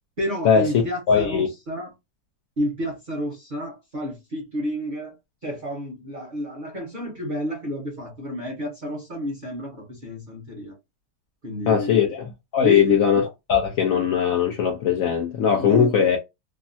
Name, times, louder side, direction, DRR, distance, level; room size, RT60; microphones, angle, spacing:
voice 1, 0.2-1.9 2.6-5.1 5.4-10.7 11.4-12.1 12.6-13.0 15.6-15.9, equal, 40° right, 0.7 m, -30 dB
voice 2, 1.1-1.5 11.7-13.2 13.5-16.2, left 7 dB, 80° left, 0.7 m, -20 dB
3.4 x 2.0 x 2.5 m
omnidirectional pair, 2.1 m